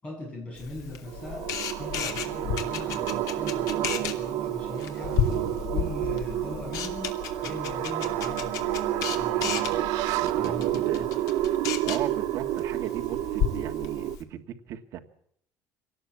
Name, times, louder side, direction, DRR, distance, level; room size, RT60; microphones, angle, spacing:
voice 1, 0.0-1.5 1.8-7.1 7.4-9.8 10.3-11.1, left 1 dB, 15° left, 0 dB, 7.8 m, -40 dB
Camera, 0.6-14.2, left 8 dB, 60° left, 2.7 m, -34 dB
sound 1, 1.1-14.2, right 13 dB, 80° right, 1.4 m, -29 dB
voice 2, 9.4-9.8 10.1-11.1 11.8-15.0, right 11 dB, 50° right, 3 dB, 1.7 m, -37 dB
25.0 x 18.5 x 8.6 m, 0.72 s
cardioid pair, 180°, 7 cm